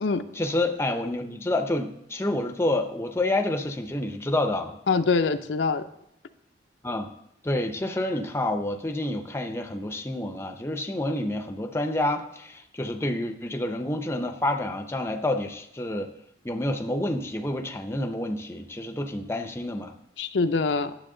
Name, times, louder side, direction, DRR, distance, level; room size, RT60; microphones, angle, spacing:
voice 1, 0.3-4.8 6.8-7.1 7.4-16.1 16.4-19.9, left 1 dB, 15° left, 6 dB, 0.5 m, -28 dB
voice 2, 4.9-5.8 20.2-21.0, left 4 dB, 85° left, 9 dB, 0.5 m, -24 dB
9.9 x 7.2 x 3.8 m, 0.79 s
head